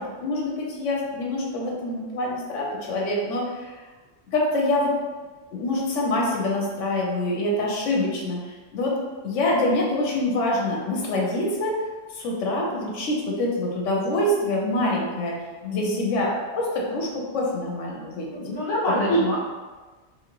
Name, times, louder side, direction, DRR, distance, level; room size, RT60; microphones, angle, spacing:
voice 1, 0.0-3.7 4.3-4.9 5.5-8.4 8.7-8.9 9.2-11.7 12.1-15.3 15.7-17.1 17.3-18.3 19.1-19.2, left 1 dB, 85° left, -2 dB, 1.0 m, -25 dB
voice 2, 15.6-15.9 18.3-19.4, left 2 dB, 60° left, -7 dB, 1.2 m, -26 dB
2.7 x 2.7 x 2.8 m, 1.3 s
omnidirectional pair, 1.2 m